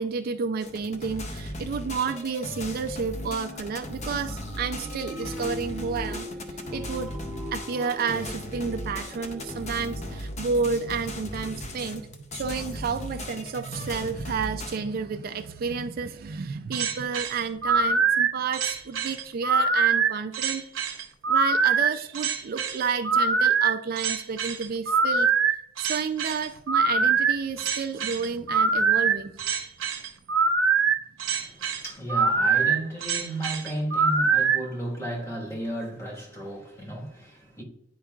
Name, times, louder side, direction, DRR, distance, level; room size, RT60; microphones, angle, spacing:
voice 1, 0.0-6.3 6.7-7.1 7.5-20.6 21.3-25.3 25.8-29.4, right 5 dB, 50° right, 0.4 m, -31 dB
sound 1, 0.6-14.8, left 1 dB, 35° left, 0.7 m, -37 dB
sound 2, 3.1-10.2, equal, ahead, 1.0 m, -41 dB
sound 3, 16.7-34.6, right 5 dB, 75° right, 0.8 m, -23 dB
voice 2, 31.2-37.6, right 1 dB, 15° left, 1.4 m, -34 dB
10.0 x 4.6 x 2.3 m
head